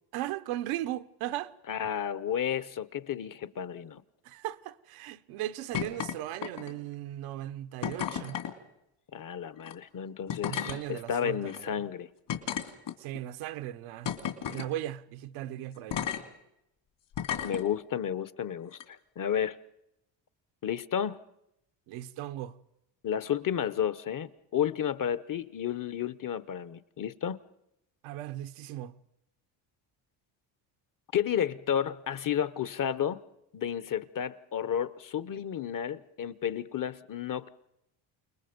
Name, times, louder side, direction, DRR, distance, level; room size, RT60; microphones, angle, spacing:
voice 1, 0.1-1.5 4.2-8.4 10.4-11.7 13.0-14.1 14.5-16.0 21.9-22.6 28.0-29.0, right 13 dB, 85° right, 1.0 m, -37 dB
voice 2, 1.7-4.0 9.1-12.1 17.4-19.6 20.6-21.2 23.0-27.4 31.1-33.2 33.5-37.5, left 9 dB, 40° left, 1.0 m, -32 dB
sound 1, 5.7-6.1 6.4-6.9 7.8-8.5 9.6-9.7 10.3-10.8 11.5-11.6 12.3-13.2 14.0-14.7 15.9-16.2 17.1-17.6 18.7-18.8, left 9 dB, 60° left, 2.7 m, -33 dB
29.0 x 20.5 x 5.3 m
supercardioid pair, 75°, 48 cm